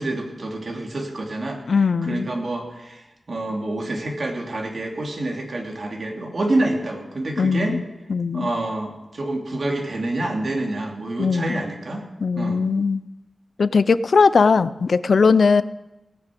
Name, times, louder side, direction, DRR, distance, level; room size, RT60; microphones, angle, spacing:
voice 1, 0.0-1.6 2.1-7.8 8.3-12.0 12.3-12.7, right 2 dB, 60° right, 1 dB, 2.8 m, -27 dB
voice 2, 1.7-2.3 7.4-7.8 8.1-8.5 11.2-11.6 12.2-13.0 13.6-15.6, left 5 dB, 75° left, 16 dB, 0.5 m, -19 dB
18.0 x 7.0 x 8.4 m, 1.0 s
wide cardioid pair, 90°, 0 cm